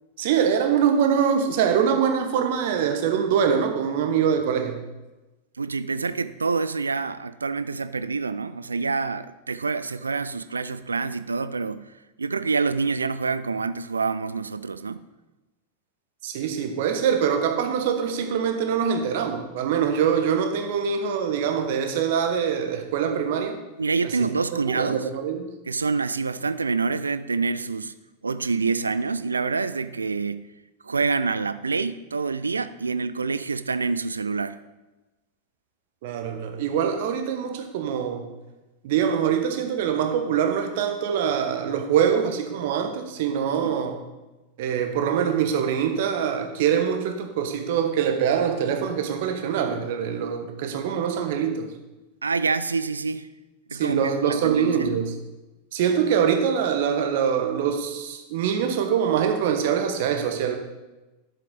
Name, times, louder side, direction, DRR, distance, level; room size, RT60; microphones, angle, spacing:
voice 1, 0.2-4.8 16.2-23.6 24.2-24.3 24.7-25.5 36.0-38.2 38.8-44.0 44.6-51.7 53.7-55.2 55.7-60.6, right 7 dB, 50° right, 5 dB, 1.2 m, -24 dB
voice 2, 5.6-11.9 12.2-15.0 23.8-25.1 25.6-27.9 28.2-30.5 30.8-34.6 43.6-43.7 52.2-53.3 53.7-54.9, right 4 dB, 75° right, 13 dB, 0.4 m, -27 dB
10.5 x 7.5 x 4.0 m, 1.1 s
figure-of-eight pair, 90°, 0 cm